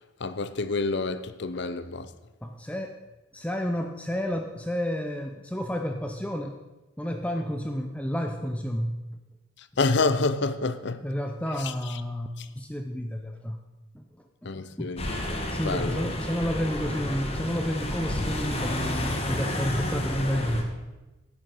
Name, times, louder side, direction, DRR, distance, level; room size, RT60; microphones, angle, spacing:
voice 1, 0.2-2.1 9.8-11.0 11.6-11.7 12.4-12.5 14.4-16.2, left 3 dB, 55° left, 0.6 m, -28 dB
voice 2, 2.4-3.0 3.3-6.6 7.0-9.0 11.0-13.6 13.9-14.0 14.4-14.5 14.8-14.9 15.5-20.7, equal, 5° left, 0.5 m, -30 dB
sound 1, 15.0-20.6, left 1 dB, 30° left, 1.5 m, -31 dB
10.5 x 9.8 x 5.4 m
head